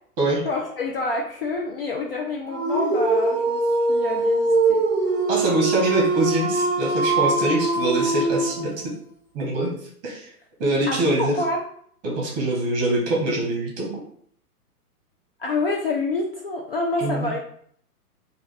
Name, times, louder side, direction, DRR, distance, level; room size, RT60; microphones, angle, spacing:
voice 1, 0.4-3.6 3.9-4.8 10.9-11.6 15.4-17.4, left 2 dB, 40° left, 0 dB, 0.4 m, -27 dB
Dog, 2.5-8.8, right 3 dB, 5° right, 0.6 m, -22 dB
voice 2, 5.3-8.9 9.3-9.7 10.0-10.3 10.6-11.3 12.0-13.9 17.0-17.3, right 1 dB, 30° right, -2 dB, 1.1 m, -24 dB
3.3 x 2.4 x 3.3 m, 0.62 s
hypercardioid pair, 130°, 46 cm